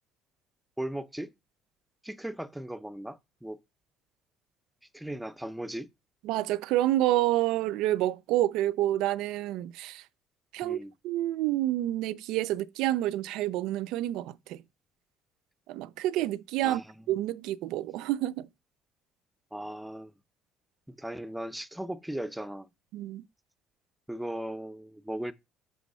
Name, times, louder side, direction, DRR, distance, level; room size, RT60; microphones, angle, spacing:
voice 1, 0.8-1.3 2.0-3.6 4.9-5.9 10.6-11.0 16.6-17.1 19.5-20.1 20.9-22.7 24.1-25.3, right 1 dB, 5° right, 0.5 m, -37 dB
voice 2, 6.3-10.0 10.5-10.8 11.0-14.6 15.7-16.8 17.1-18.5 22.9-23.2, right 14 dB, 80° right, 0.3 m, -28 dB
5.9 x 3.1 x 5.3 m
cardioid pair, 120°, 0 cm